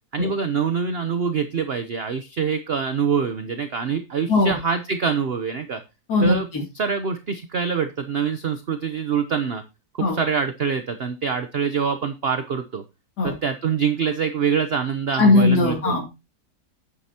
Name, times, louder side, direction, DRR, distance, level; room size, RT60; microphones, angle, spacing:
voice 1, 0.1-5.8 6.2-6.5 6.7-9.6 9.9-12.8 13.2-16.0, right 6 dB, 50° right, 9 dB, 0.8 m, -25 dB
voice 2, 15.2-16.0, left 3 dB, 70° left, -1 dB, 3.3 m, -18 dB
9.6 x 9.4 x 2.8 m, 0.27 s
omnidirectional pair, 1.8 m